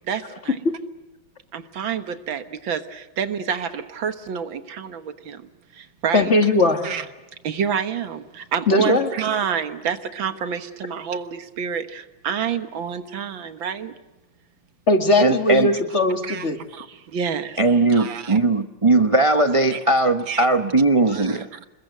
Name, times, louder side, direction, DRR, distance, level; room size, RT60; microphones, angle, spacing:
voice 1, 0.1-0.6 1.5-6.4 6.8-7.1 7.4-13.9 16.2-18.4 19.7-19.8 20.3-20.5 21.1-21.7, right 7 dB, 80° right, 10 dB, 2.1 m, -28 dB
voice 2, 6.1-6.8 8.7-9.1 14.9-16.6, left 2 dB, 35° left, 6 dB, 2.2 m, -19 dB
voice 3, 15.2-15.7 17.6-21.5, right 2 dB, 45° right, 8 dB, 0.4 m, -19 dB
28.5 x 21.5 x 7.9 m, 1.1 s
omnidirectional pair, 2.1 m